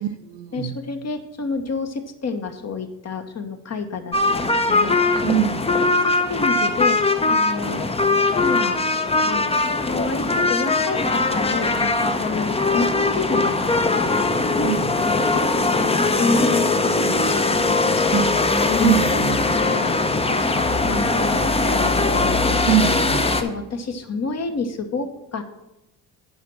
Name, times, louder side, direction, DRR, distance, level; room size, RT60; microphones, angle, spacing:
voice 1, 0.0-0.8 5.2-5.7 12.3-12.5 14.6-14.9 18.1-18.5 18.8-19.4 22.7-23.3, right 13 dB, 70° right, 11 dB, 0.8 m, -24 dB
voice 2, 0.5-5.4 6.0-7.9 8.4-8.8 9.2-14.1 14.6-15.5 15.8-19.1 19.4-22.8 23.4-25.4, left 4 dB, 35° left, 7 dB, 1.1 m, -29 dB
sound 1, 4.1-23.4, left 3 dB, 15° left, 0.7 m, -20 dB
8.1 x 5.1 x 6.0 m, 0.95 s
hypercardioid pair, 60°, 43 cm